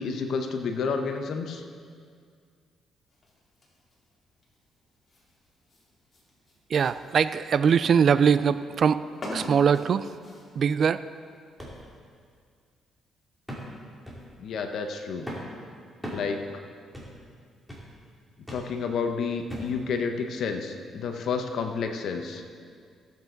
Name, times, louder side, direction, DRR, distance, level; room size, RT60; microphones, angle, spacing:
voice 1, 0.0-1.6 14.4-15.3 16.1-16.4 18.5-22.4, left 5 dB, 70° left, 5 dB, 1.1 m, -30 dB
sound 1, 3.1-10.7, left 1 dB, 30° left, 3.2 m, -45 dB
voice 2, 6.7-9.0 9.3-10.1 10.6-11.0, right 7 dB, 55° right, 14 dB, 0.4 m, -22 dB
sound 2, 11.6-11.8 12.3-12.4 13.5-13.8 14.1-14.3 15.3-15.5 16.0-16.3 16.9-17.2 17.7-17.9 18.5-18.7 19.5-19.8 20.5-20.6, equal, ahead, 2.8 m, -38 dB
16.5 x 8.2 x 4.0 m, 2.1 s
cardioid pair, 90°, 0 cm